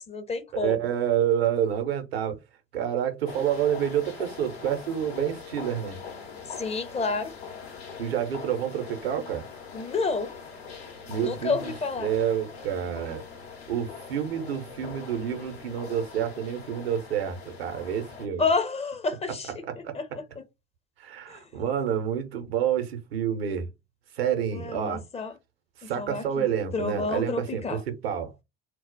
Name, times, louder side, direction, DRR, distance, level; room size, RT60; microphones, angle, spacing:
voice 1, 0.0-0.7 6.6-7.3 9.7-10.3 11.2-12.1 18.4-19.5 19.9-20.0 24.5-25.3 26.0-27.8, left 4 dB, 20° left, 0.5 m, -29 dB
voice 2, 0.5-2.4 2.7-6.0 8.0-9.4 11.1-13.2 13.7-18.4 19.5-20.0 21.0-23.7 24.2-25.0 25.8-28.3, right 9 dB, 75° right, 0.7 m, -28 dB
sound 1, 3.3-18.3, left 5 dB, 85° left, 0.8 m, -42 dB
2.3 x 2.0 x 3.7 m
figure-of-eight pair, 60°, 31 cm